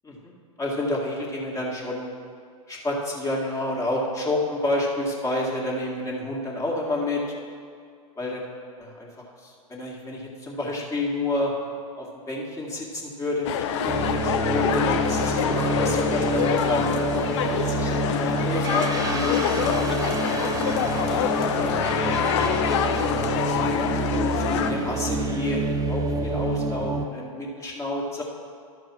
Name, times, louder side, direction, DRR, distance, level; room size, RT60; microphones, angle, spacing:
voice 1, 0.6-2.1 2.7-7.2 8.2-8.5 8.8-11.5 12.0-16.9 17.6-22.0 22.3-23.6 24.3-25.6 25.9-28.2, left 1 dB, 20° left, -2 dB, 2.0 m, -30 dB
sound 1, 13.4-24.7, left 8 dB, 55° left, 0.6 m, -26 dB
sound 2, 13.8-27.1, right 2 dB, 20° right, 0.8 m, -27 dB
12.5 x 4.8 x 6.1 m, 2.2 s
hypercardioid pair, 100°, 17 cm